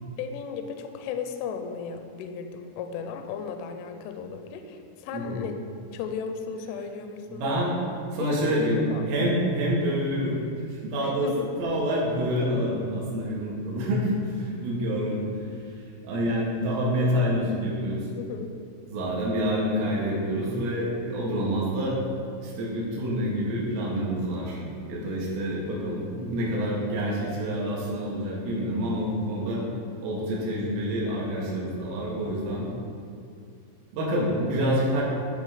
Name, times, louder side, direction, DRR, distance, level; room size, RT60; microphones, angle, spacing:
voice 1, 0.2-5.6 5.9-7.5 8.2-9.1 11.0-11.5 18.2-18.5, left 6 dB, 85° left, 6 dB, 2.8 m, -35 dB
voice 2, 5.1-5.4 7.3-7.8 8.1-10.4 10.7-15.3 16.0-18.1 18.9-22.0 22.4-24.6 24.9-29.6 30.0-32.7 33.9-35.0, equal, 80° right, -4 dB, 4.1 m, -27 dB
11.5 x 3.9 x 4.9 m, 2.4 s
omnidirectional pair, 5.8 m